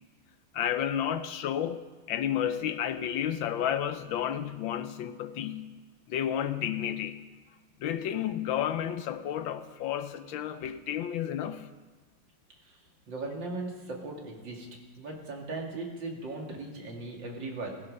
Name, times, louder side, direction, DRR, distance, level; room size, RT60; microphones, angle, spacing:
voice 1, 0.5-5.7 6.1-7.2 7.8-11.7, left 10 dB, 75° left, 1.4 m, -31 dB
voice 2, 13.1-14.7 15.0-17.7, right 2 dB, 60° right, 3.1 m, -38 dB
16.5 x 16.0 x 5.3 m
omnidirectional pair, 2.3 m